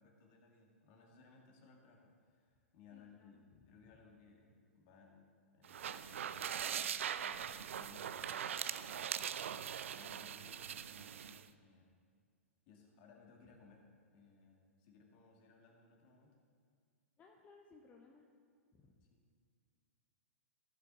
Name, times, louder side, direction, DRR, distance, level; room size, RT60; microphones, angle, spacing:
voice 1, 0.0-6.3 7.2-9.5 9.9-11.9 12.7-16.4 19.0-19.2, left 4 dB, 40° left, 1 dB, 1.9 m, -63 dB
voice 2, 2.9-3.7 17.2-18.3 18.7-19.0, left 4 dB, 20° left, 1 dB, 0.8 m, -63 dB
sound 1, 5.6-11.4, right 9 dB, 65° right, 0.4 m, -41 dB
15.0 x 6.4 x 4.0 m, 2.2 s
figure-of-eight pair, 110°, 8 cm